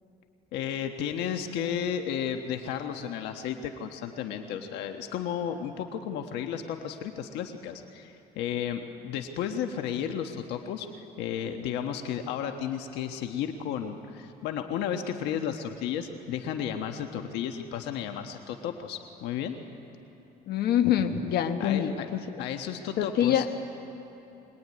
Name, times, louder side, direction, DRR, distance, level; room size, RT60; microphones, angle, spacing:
voice 1, 0.5-10.9 11.2-19.6 21.6-22.1 22.4-23.5, left 8 dB, 90° left, 5 dB, 1.4 m, -33 dB
voice 2, 20.5-21.9 23.0-23.5, left 10 dB, 70° left, 6 dB, 1.5 m, -25 dB
24.0 x 20.5 x 9.6 m, 2.9 s
cardioid pair, 110°, 17 cm